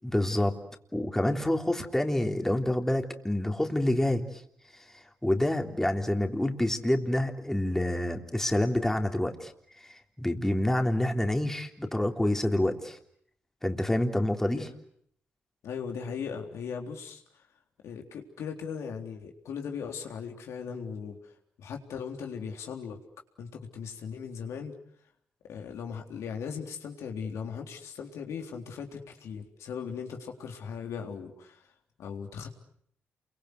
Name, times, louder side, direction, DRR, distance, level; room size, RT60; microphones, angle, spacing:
voice 1, 0.0-0.6 0.9-4.4 4.7-9.5 9.8-13.0 13.6-14.7, left 1 dB, 10° left, 4 dB, 3.5 m, -28 dB
voice 2, 15.6-17.4 17.8-21.2 21.6-23.0 23.4-24.8 25.5-31.6 32.0-32.5, left 6 dB, 80° left, 3 dB, 3.7 m, -38 dB
28.5 x 24.0 x 8.2 m, 0.68 s
cardioid pair, 70°, 5 cm